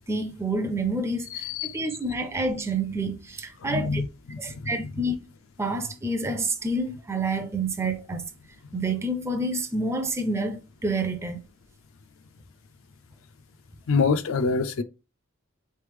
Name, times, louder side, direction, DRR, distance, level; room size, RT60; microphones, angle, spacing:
voice 1, 0.1-4.0 4.4-5.2 5.6-8.2 8.7-11.4, right 2 dB, 15° right, 0.4 m, -28 dB
voice 2, 1.3-1.8 3.6-4.7 13.9-14.8, left 4 dB, 70° left, 0.4 m, -26 dB
3.8 x 3.2 x 3.3 m
head